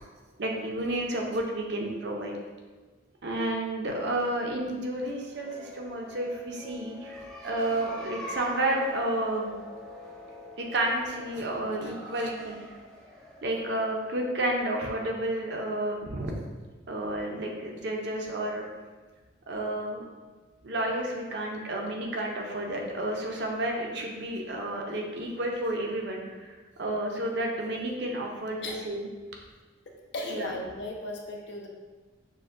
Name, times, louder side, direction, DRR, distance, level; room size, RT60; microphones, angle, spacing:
voice 1, 0.4-2.3 3.2-7.1 7.4-9.5 10.6-12.6 13.4-16.4 16.9-18.7 19.5-20.0 20.6-29.1 30.3-30.5, right 1 dB, 55° right, 0 dB, 0.6 m, -31 dB
sound 1, 5.2-14.8, left 2 dB, 5° left, 0.4 m, -45 dB
voice 2, 29.9-31.7, left 1 dB, 60° left, 1 dB, 0.5 m, -36 dB
6.4 x 2.2 x 2.6 m, 1.3 s
head